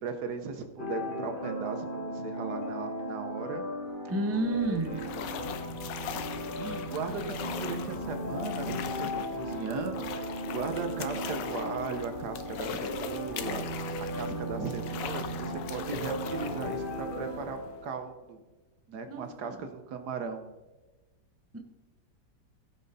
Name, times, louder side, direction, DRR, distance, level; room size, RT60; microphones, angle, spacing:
voice 1, 0.0-3.6 4.5-4.6 4.9-5.3 6.5-18.4 18.9-20.5, right 5 dB, 70° right, 7 dB, 1.4 m, -37 dB
sound 1, 0.8-18.0, equal, 30° left, 1.4 m, -36 dB
voice 2, 4.1-5.0 19.1-19.7 21.5-21.6, right 2 dB, 10° right, 4 dB, 0.8 m, -31 dB
sound 2, 4.2-18.0, left 8 dB, 85° left, 1.4 m, -41 dB
16.0 x 5.9 x 4.1 m, 1.1 s
omnidirectional pair, 1.9 m